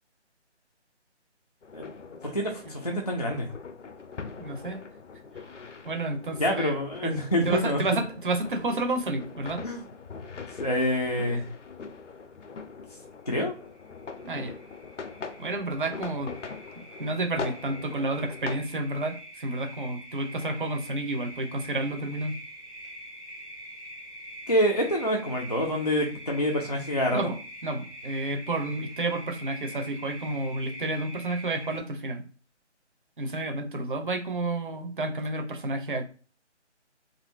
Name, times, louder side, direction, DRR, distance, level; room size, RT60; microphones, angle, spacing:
sound 1, 1.6-18.6, left 5 dB, 85° left, 0.6 m, -42 dB
voice 1, 2.2-3.6 6.4-7.8 9.6-9.9 10.5-11.5 12.9-13.0 13.3-13.5 24.5-27.4, equal, 35° left, 0 dB, 0.4 m, -27 dB
voice 2, 4.4-4.8 5.8-6.7 7.4-9.6 14.2-14.5 15.4-16.3 17.0-22.3 27.1-27.3 27.6-32.2 33.2-36.0, right 2 dB, 45° right, 5 dB, 0.6 m, -30 dB
sound 2, 13.7-31.8, equal, 5° left, 0.8 m, -45 dB
2.6 x 2.5 x 3.1 m, 0.39 s
figure-of-eight pair, 160°, 35 cm